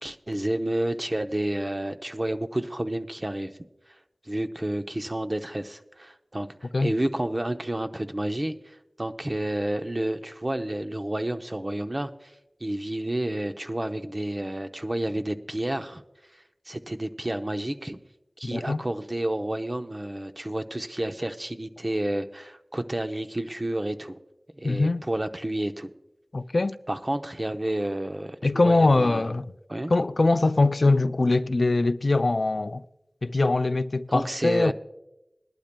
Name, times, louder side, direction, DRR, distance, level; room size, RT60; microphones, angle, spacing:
voice 1, 0.0-3.5 4.3-12.3 12.6-16.0 16.7-18.0 18.4-24.2 24.6-25.9 26.9-29.3 29.7-29.9 34.1-34.7, right 1 dB, 35° right, 0.7 m, -30 dB
voice 2, 18.5-18.8 24.6-25.0 26.3-26.8 28.4-29.5 29.9-32.8 33.2-34.7, left 2 dB, 65° left, 0.4 m, -22 dB
21.0 x 11.5 x 2.2 m
wide cardioid pair, 45°, 0 cm